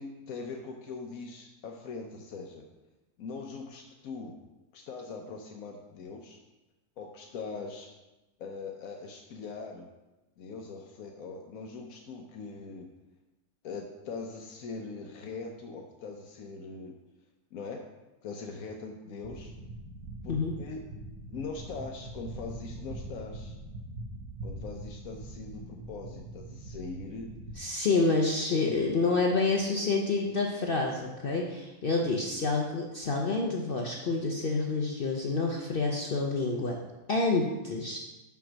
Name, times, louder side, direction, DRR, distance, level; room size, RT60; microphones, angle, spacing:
voice 1, 0.0-2.7 3.2-4.4 4.7-6.4 7.0-7.9 8.4-9.9 10.4-12.9 13.6-17.0 17.5-17.8 18.2-19.5 20.2-20.8 21.3-23.6 24.4-27.3 28.5-28.8, left 4 dB, 80° left, 2 dB, 1.2 m, -41 dB
sound 1, 19.2-27.6, right 2 dB, 60° right, 1.7 m, -43 dB
voice 2, 27.6-36.8 37.1-38.0, left 3 dB, 50° left, 0 dB, 0.8 m, -28 dB
5.8 x 5.8 x 6.2 m, 1.1 s
omnidirectional pair, 1.4 m